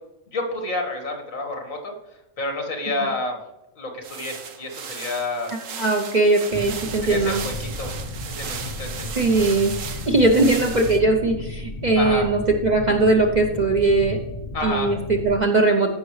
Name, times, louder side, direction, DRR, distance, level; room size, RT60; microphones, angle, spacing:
voice 1, 0.3-1.9 2.4-3.4 3.8-5.5 7.0-7.9 8.2-9.1 12.0-12.3 14.5-15.0, left 2 dB, 70° left, 3 dB, 2.0 m, -29 dB
sound 1, 4.0-11.0, right 6 dB, 65° right, 1.2 m, -36 dB
voice 2, 5.5-7.4 9.1-14.2 14.6-15.9, right 2 dB, 40° right, 3 dB, 0.7 m, -20 dB
sound 2, 6.5-15.4, left 2 dB, 30° left, 1.1 m, -34 dB
15.0 x 5.9 x 3.2 m, 0.94 s
omnidirectional pair, 1.5 m